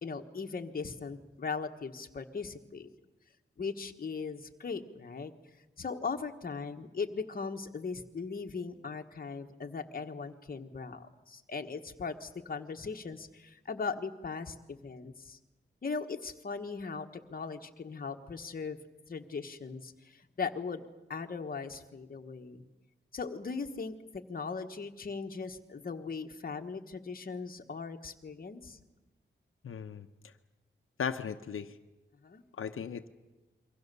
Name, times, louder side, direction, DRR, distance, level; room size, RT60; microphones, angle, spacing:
voice 1, 0.0-2.9 3.6-5.3 5.8-15.4 15.8-18.8 19.1-20.8 21.1-22.6 23.1-28.8 32.2-32.4, left 5 dB, 45° left, 5 dB, 1.4 m, -39 dB
voice 2, 29.6-30.3 31.0-31.8 32.5-33.1, left 7 dB, 80° left, 6 dB, 0.9 m, -37 dB
27.5 x 24.0 x 6.9 m, 1.1 s
wide cardioid pair, 175°, 21 cm